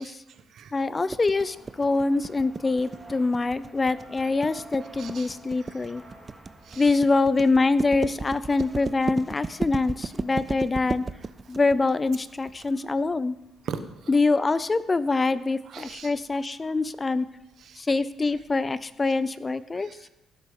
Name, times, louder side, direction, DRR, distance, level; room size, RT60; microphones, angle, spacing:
voice 1, 0.0-0.8 4.2-4.3 5.0-5.3 5.6-5.9 6.6-7.0 13.6-14.1 15.6-16.1 17.6-17.8 19.7-20.1, right 6 dB, 65° right, 10 dB, 1.2 m, -41 dB
voice 2, 0.7-6.0 6.8-11.0 11.5-13.4 14.1-17.3 17.8-19.9, left 3 dB, 25° left, 16 dB, 0.6 m, -24 dB
sound 1, 1.1-12.7, right 4 dB, 30° right, 0.5 m, -34 dB
sound 2, 1.3-19.3, right 1 dB, 10° right, 3.8 m, -53 dB
17.0 x 7.7 x 5.4 m, 0.87 s
cardioid pair, 90°, 0 cm